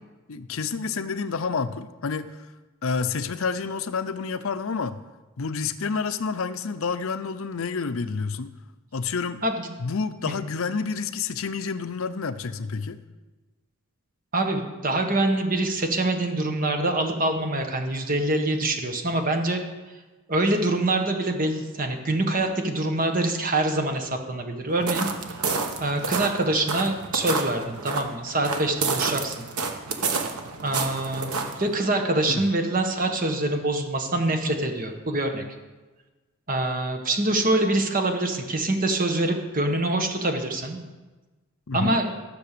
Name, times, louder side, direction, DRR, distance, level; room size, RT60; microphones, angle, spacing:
voice 1, 0.3-2.4 2.8-5.0 5.4-8.5 8.9-9.4 9.8-13.0 32.3-32.4 41.7-42.0, left 5 dB, 65° left, 12 dB, 0.6 m, -29 dB
voice 2, 14.3-19.6 20.3-25.1 25.8-29.5 30.6-35.4 36.5-40.8 41.7-42.1, right 2 dB, 40° right, 5 dB, 1.4 m, -25 dB
sound 1, 24.7-31.8, right 4 dB, 90° right, 1.3 m, -30 dB
14.0 x 6.9 x 6.8 m, 1.2 s
head